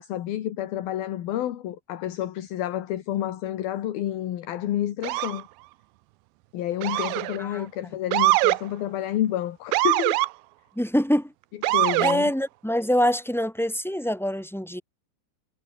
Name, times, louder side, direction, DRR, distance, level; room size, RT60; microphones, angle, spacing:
voice 1, 0.0-5.5 6.5-10.2 11.7-12.3, left 12 dB, 70° left, 3.3 m, -29 dB
Motor vehicle (road) / Siren, 5.0-5.4 6.8-7.4 8.1-8.6 9.7-10.3 11.6-12.2, right 21 dB, 85° right, 2.1 m, -22 dB
voice 2, 7.4-7.7 10.8-11.3 12.0-14.8, equal, ahead, 7.0 m, -25 dB
omnidirectional pair, 4.8 m